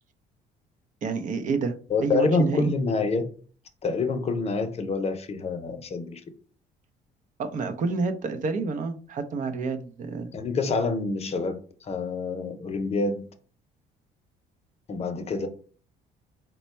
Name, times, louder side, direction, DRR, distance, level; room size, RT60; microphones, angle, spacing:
voice 1, 1.0-1.7 2.0-2.7 7.4-10.3, right 4 dB, 50° right, 0.6 m, -28 dB
voice 2, 1.9-3.3 3.8-6.2 10.3-13.2 14.9-15.5, left 3 dB, 40° left, 0.7 m, -27 dB
4.1 x 2.2 x 4.3 m
cardioid pair, 110°, 17 cm